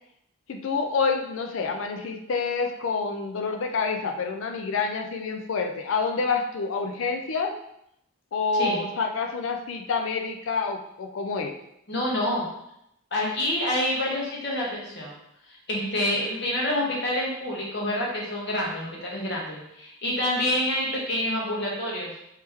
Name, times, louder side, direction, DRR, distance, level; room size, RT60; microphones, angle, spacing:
voice 1, 0.5-7.6 8.3-11.6, left 4 dB, 70° left, 4 dB, 0.4 m, -28 dB
voice 2, 11.9-12.5 13.1-15.1 15.5-22.1, left 1 dB, 55° left, -3 dB, 1.1 m, -27 dB
3.2 x 3.0 x 3.4 m, 0.78 s
head